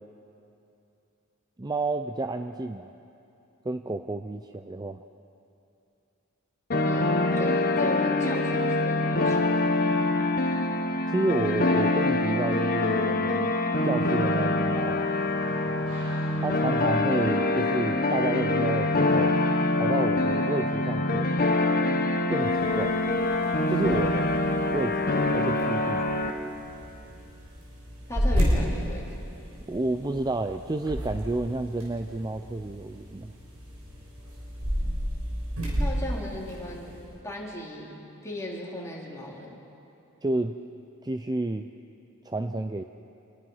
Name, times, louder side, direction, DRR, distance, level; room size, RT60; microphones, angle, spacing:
voice 1, 1.6-2.9 3.6-5.0 11.1-13.5 13.8-15.1 16.4-19.4 19.8-21.4 22.3-23.0 23.7-24.3 24.7-25.1 25.3-26.1 29.7-33.3 40.2-40.6 41.0-41.7 42.2-42.8, right 2 dB, 20° right, 7 dB, 0.5 m, -30 dB
sound 1, 6.7-26.3, left 2 dB, 40° left, 1.2 m, -25 dB
voice 2, 6.8-9.5 28.1-29.1 35.8-36.9 37.2-39.5, left 1 dB, 15° left, -4 dB, 3.4 m, -37 dB
sound 2, 14.7-19.8, right 1 dB, 70° right, 4.7 m, -46 dB
sound 3, 22.4-37.1, equal, 90° right, 6.1 m, -33 dB
27.0 x 21.0 x 5.6 m, 2.8 s
head